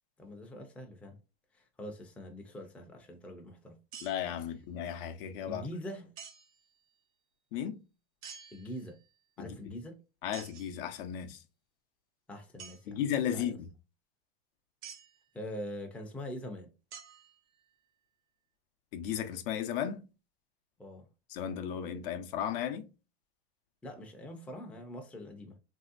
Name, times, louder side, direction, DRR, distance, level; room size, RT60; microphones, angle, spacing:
voice 1, 0.2-1.2 1.5-3.8 5.5-6.1 8.5-9.0 9.4-10.0 12.3-13.0 13.3-13.6 15.3-16.7 20.8-21.1 23.8-25.6, equal, 5° left, 0.5 m, -43 dB
sound 1, 3.9-4.5 6.2-6.7 8.2-9.1 10.3-10.8 12.6-12.8 14.8-15.2 16.9-17.7, right 7 dB, 40° right, 0.7 m, -49 dB
voice 2, 4.0-5.6 7.5-7.8 9.4-9.7 10.2-11.4 12.9-13.7 18.9-20.1 21.3-22.9, left 9 dB, 60° left, 0.6 m, -35 dB
3.1 x 2.7 x 2.4 m
hypercardioid pair, 125°, 32 cm